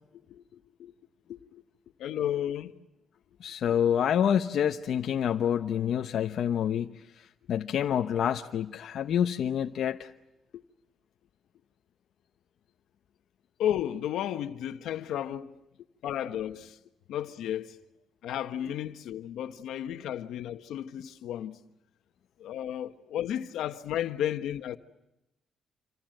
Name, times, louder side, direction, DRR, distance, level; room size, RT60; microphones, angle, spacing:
voice 1, 2.0-2.7 13.6-15.6 16.0-16.8 17.1-17.8 18.2-21.6 22.4-24.8, left 11 dB, 85° left, 1.3 m, -33 dB
voice 2, 3.4-6.9 7.5-10.1, left 9 dB, 65° left, 0.9 m, -27 dB
28.0 x 25.5 x 7.9 m
cardioid pair, 115°, 0 cm